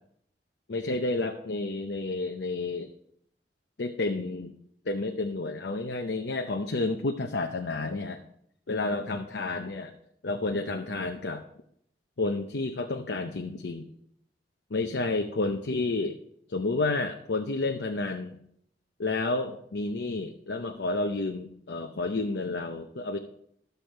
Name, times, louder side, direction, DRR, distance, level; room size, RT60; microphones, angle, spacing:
voice 1, 0.7-2.9 3.8-4.5 4.9-8.2 8.7-9.9 10.2-11.4 12.2-13.9 14.7-16.1 16.5-18.4 19.0-23.2, left 2 dB, 85° left, 4 dB, 0.7 m, -30 dB
14.0 x 6.9 x 4.5 m, 0.71 s
head